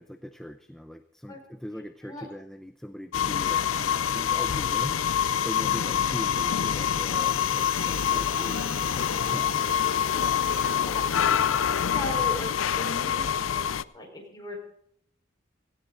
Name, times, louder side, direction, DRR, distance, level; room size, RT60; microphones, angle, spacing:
voice 1, 0.0-5.0 5.4-9.8, equal, 5° left, 7 dB, 0.6 m, -40 dB
sound 1, 3.1-13.8, left 8 dB, 85° left, 0.5 m, -26 dB
sound 2, 6.7-11.9, right 4 dB, 85° right, 2.5 m, -44 dB
voice 2, 11.8-13.7 13.9-14.6, left 1 dB, 20° left, 1 dB, 4.6 m, -37 dB
17.0 x 16.0 x 3.9 m, 0.68 s
head